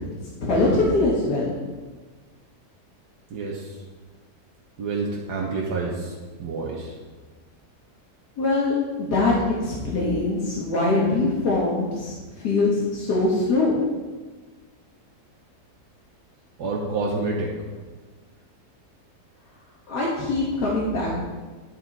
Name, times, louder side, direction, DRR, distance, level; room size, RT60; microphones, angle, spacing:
voice 1, 0.4-1.5 8.4-9.3 9.6-13.8 19.9-21.2, left 2 dB, 85° left, -5 dB, 2.0 m, -23 dB
voice 2, 3.3-3.8 4.8-6.9 16.6-17.5, right 3 dB, 85° right, -2 dB, 1.6 m, -28 dB
11.0 x 5.9 x 4.1 m, 1.3 s
omnidirectional pair, 1.7 m